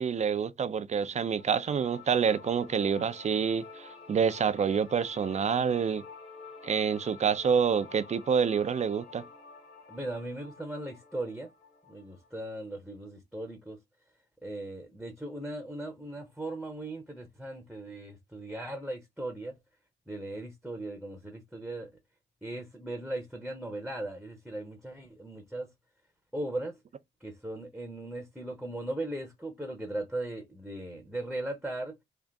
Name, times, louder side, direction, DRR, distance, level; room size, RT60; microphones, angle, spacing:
voice 1, 0.0-6.0 6.6-9.2, right 6 dB, 35° right, 0.5 m, -27 dB
sound 1, 1.4-12.4, left 4 dB, 30° left, 1.2 m, -50 dB
voice 2, 9.9-11.5 11.9-13.8 14.4-19.6 20.1-21.9 22.4-25.7 26.3-26.8 27.2-31.9, right 1 dB, ahead, 0.9 m, -38 dB
3.7 x 2.5 x 3.4 m
cardioid pair, 90°, 20 cm